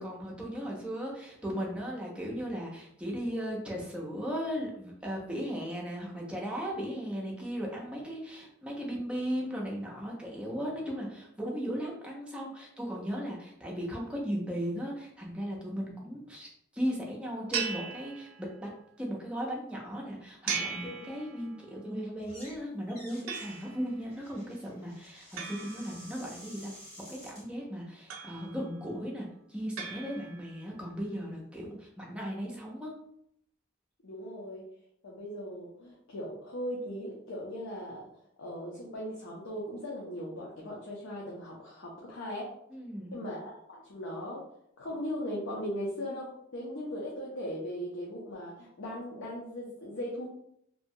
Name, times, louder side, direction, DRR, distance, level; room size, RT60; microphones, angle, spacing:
voice 1, 0.0-18.7 19.0-32.9 42.7-43.1, equal, 5° right, -3 dB, 0.6 m, -37 dB
sound 1, 17.5-18.7 20.5-21.7 23.3-24.0 25.4-26.5 28.1-28.8 29.8-30.7, right 6 dB, 90° right, 0.5 m, -38 dB
sound 2, 22.2-22.6 22.9-27.4, equal, 50° left, 1.5 m, -51 dB
voice 2, 34.0-34.6 35.0-38.1 38.4-42.5 43.1-44.4 44.8-50.3, equal, 80° left, -4 dB, 0.6 m, -38 dB
2.7 x 2.2 x 2.7 m, 0.72 s
head